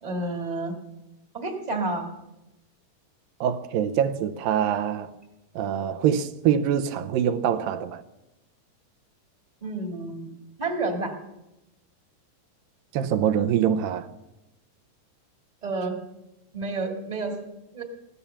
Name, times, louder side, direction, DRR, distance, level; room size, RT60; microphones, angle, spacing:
voice 1, 0.0-0.8 1.3-2.1 9.6-10.3 10.6-11.1 15.6-16.0 16.5-17.4 17.7-17.8, right 2 dB, 20° right, 1.0 m, -29 dB
voice 2, 3.4-5.1 5.6-8.0 12.9-14.1, right 9 dB, 85° right, 2.5 m, -24 dB
16.5 x 12.5 x 7.0 m
omnidirectional pair, 4.1 m